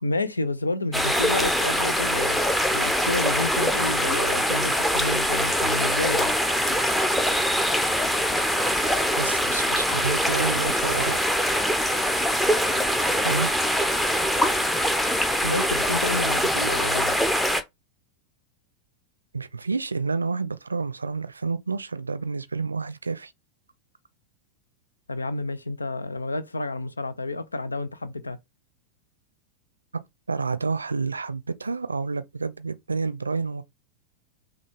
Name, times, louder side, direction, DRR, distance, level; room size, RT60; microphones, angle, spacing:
voice 1, 0.0-2.4 2.7-6.3 15.4-17.1 25.1-28.4, left 2 dB, 80° left, 0.5 m, -30 dB
sound 1, 0.9-17.6, equal, 5° left, 0.7 m, -23 dB
voice 2, 9.2-11.2 13.2-13.5 19.3-23.3 30.3-33.6, right 4 dB, 75° right, 0.5 m, -29 dB
5.8 x 2.4 x 3.5 m
figure-of-eight pair, 90°, 0 cm